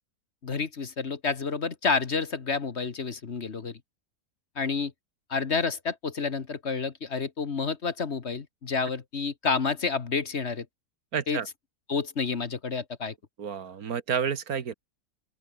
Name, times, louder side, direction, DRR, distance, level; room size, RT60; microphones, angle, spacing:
voice 1, 0.4-3.8 4.5-4.9 5.3-10.6 11.3-11.4 11.9-13.1, left 5 dB, 45° left, 1.6 m, -29 dB
voice 2, 11.1-11.5 13.4-14.7, right 7 dB, 65° right, 1.8 m, -30 dB
open air
omnidirectional pair, 1.7 m